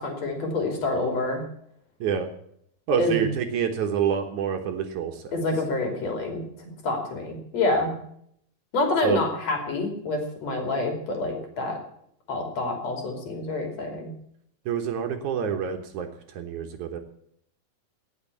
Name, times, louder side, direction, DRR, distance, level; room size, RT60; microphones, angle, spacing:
voice 1, 0.0-1.4 3.0-3.3 5.3-7.9 8.7-11.8 12.3-14.1, left 2 dB, 50° left, 3 dB, 4.0 m, -27 dB
voice 2, 2.9-5.2 9.0-9.2 14.7-16.1 16.3-17.0, right 8 dB, 65° right, 6 dB, 2.5 m, -27 dB
18.0 x 6.5 x 8.4 m, 0.69 s
omnidirectional pair, 3.9 m